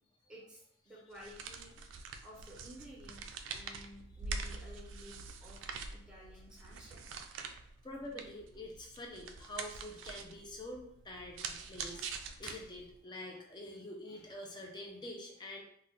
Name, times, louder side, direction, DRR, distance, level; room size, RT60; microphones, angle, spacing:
voice 1, 0.3-3.2 3.5-5.6 5.9-7.0, equal, 5° right, -4 dB, 0.9 m, -54 dB
sound 1, 1.1-13.0, right 4 dB, 70° right, 0.3 m, -45 dB
voice 2, 7.8-15.6, left 1 dB, 25° left, 0 dB, 0.5 m, -46 dB
2.4 x 2.1 x 3.8 m, 0.70 s
head